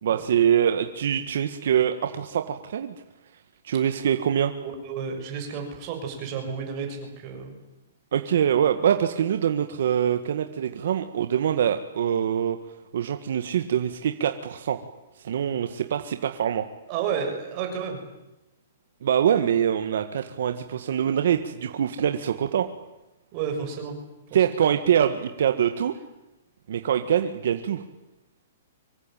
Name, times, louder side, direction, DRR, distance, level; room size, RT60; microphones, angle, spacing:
voice 1, 0.0-2.9 3.6-4.5 8.1-12.6 12.9-14.8 15.2-16.6 19.0-22.7 24.3-25.9 26.7-27.8, right 9 dB, 65° right, 7 dB, 1.8 m, -24 dB
voice 2, 4.6-7.5 16.9-18.0 23.3-24.0, right 6 dB, 30° right, 3 dB, 6.9 m, -31 dB
25.0 x 23.5 x 9.2 m, 0.95 s
hypercardioid pair, 165°, 0 cm